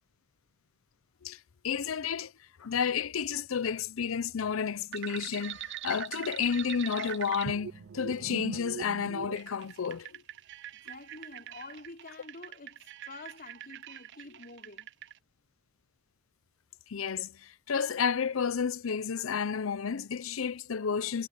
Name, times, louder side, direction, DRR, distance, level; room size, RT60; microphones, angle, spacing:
voice 1, 1.6-2.3 2.6-10.2 16.9-21.3, left 6 dB, 70° left, 0.6 m, -31 dB
sound 1, 4.9-15.1, right 9 dB, 60° right, 0.4 m, -42 dB
voice 2, 10.7-14.9, left 3 dB, 45° left, 4.8 m, -48 dB
head